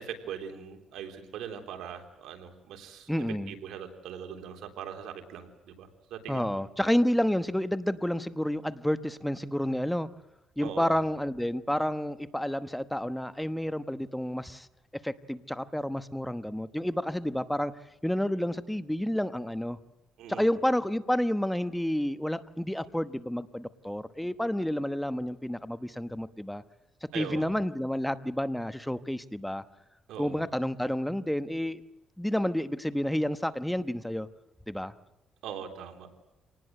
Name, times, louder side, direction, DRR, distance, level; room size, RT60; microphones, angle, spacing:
voice 1, 0.0-3.1 3.5-6.5 10.6-11.0 20.2-20.5 27.1-27.5 30.1-30.4 35.4-36.1, right 8 dB, 85° right, 5 dB, 3.6 m, -41 dB
voice 2, 3.1-3.5 6.3-10.1 10.6-14.7 15.0-17.7 18.0-19.8 20.3-26.6 27.1-29.6 30.2-31.8 32.2-34.3 34.7-34.9, equal, 5° left, 12 dB, 1.0 m, -30 dB
26.5 x 19.5 x 7.7 m, 0.94 s
cardioid pair, 90°, 0 cm